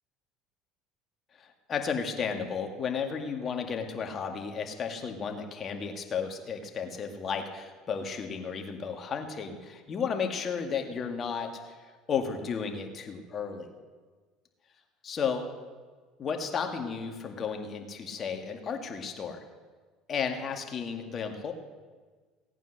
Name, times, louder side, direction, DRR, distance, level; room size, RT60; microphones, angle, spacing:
voice 1, 1.4-11.8 12.1-13.7 15.0-15.5 16.2-19.4 20.1-21.5, left 6 dB, 40° left, 4 dB, 2.0 m, -33 dB
17.0 x 9.1 x 6.5 m, 1.5 s
supercardioid pair, 90°, 0 cm